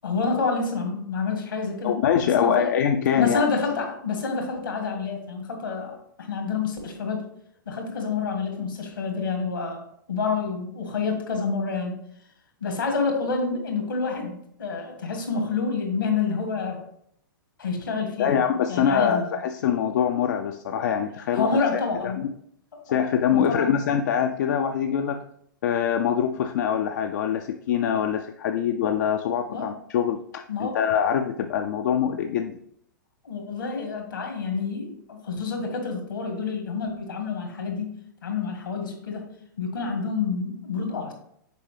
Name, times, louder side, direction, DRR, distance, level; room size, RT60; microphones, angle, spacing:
voice 1, 0.0-1.9 2.2-2.7 3.2-7.3 7.7-9.8 10.1-12.0 12.6-16.8 17.6-19.2 21.3-22.3 22.9-23.8 29.5-29.7 30.5-30.8 33.2-38.0 38.2-39.3 39.6-41.1, left 4 dB, 75° left, 3 dB, 1.8 m, -28 dB
voice 2, 1.8-3.4 18.2-21.6 22.0-22.3 22.9-25.2 25.6-32.6, left 8 dB, 55° left, 6 dB, 0.4 m, -24 dB
6.7 x 4.6 x 3.2 m, 0.71 s
figure-of-eight pair, 105°, 11 cm